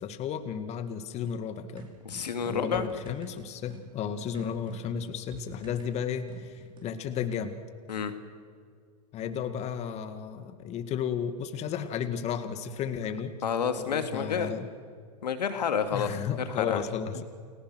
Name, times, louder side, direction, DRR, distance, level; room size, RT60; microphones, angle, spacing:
voice 1, 0.0-1.9 2.5-7.6 9.1-13.3 13.8-14.7 15.9-17.2, left 7 dB, 30° left, 9 dB, 2.1 m, -33 dB
sound 1, 1.8-6.9, right 2 dB, 25° right, 4.8 m, -49 dB
voice 2, 2.0-2.9 7.9-8.1 13.4-14.5 15.2-16.8, left 7 dB, 80° left, 7 dB, 2.6 m, -29 dB
30.0 x 20.5 x 6.4 m, 2.1 s
hypercardioid pair, 115°, 21 cm